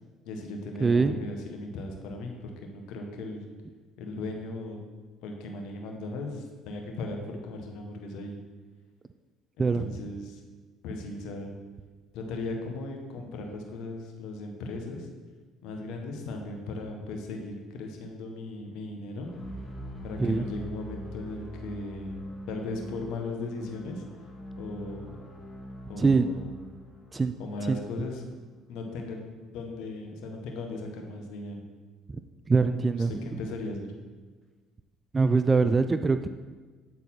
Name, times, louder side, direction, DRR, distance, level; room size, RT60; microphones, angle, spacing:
voice 1, 0.3-3.5 4.0-4.8 5.2-8.4 9.6-10.4 10.8-11.6 12.1-15.1 15.6-19.3 20.0-24.0 24.6-25.2 25.9-26.5 27.4-28.2 28.7-29.2 29.5-31.6 33.0-33.9, left 2 dB, 70° left, 3 dB, 1.1 m, -37 dB
voice 2, 0.8-1.2 9.6-9.8 20.2-20.4 26.0-26.3 27.1-27.3 27.7-28.1 32.1-32.2 32.5-33.1 35.1-36.3, right 4 dB, 25° right, 10 dB, 0.3 m, -23 dB
sound 1, 19.2-29.2, equal, 25° left, 1.8 m, -43 dB
8.6 x 4.0 x 4.3 m, 1.3 s
hypercardioid pair, 70°, 0 cm